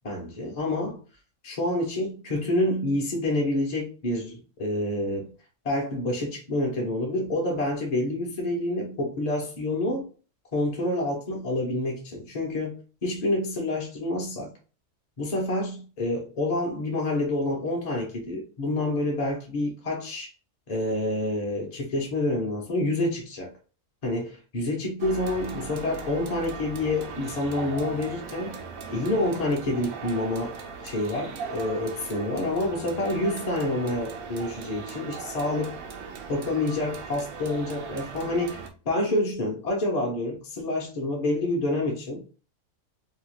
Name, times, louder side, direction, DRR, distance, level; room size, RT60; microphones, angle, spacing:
voice 1, 0.0-1.0 1.4-5.3 5.6-10.1 10.5-14.5 15.2-20.3 20.7-23.5 24.0-28.6 28.9-30.6 30.8-35.8 36.3-42.2, left 1 dB, 40° left, 0.6 m, -28 dB
sound 1, 25.0-38.7, right 5 dB, 90° right, 1.0 m, -38 dB
2.7 x 2.2 x 3.0 m
omnidirectional pair, 1.4 m